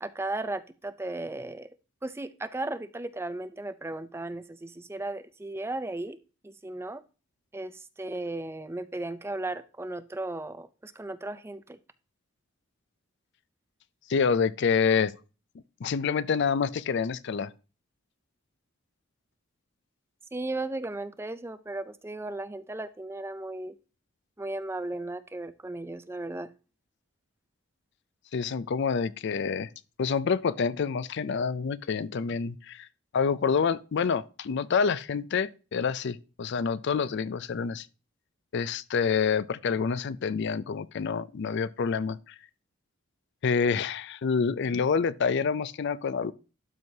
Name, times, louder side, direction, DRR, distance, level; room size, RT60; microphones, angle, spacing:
voice 1, 0.0-1.7 2.0-6.2 6.4-7.0 7.5-11.8 20.3-23.8 24.4-26.5, right 2 dB, 10° right, 0.4 m, -35 dB
voice 2, 14.1-15.1 15.8-17.5 28.3-29.7 30.0-32.9 33.1-37.9 38.5-42.3 43.4-46.3, left 6 dB, 55° left, 0.4 m, -27 dB
12.0 x 4.7 x 2.8 m
head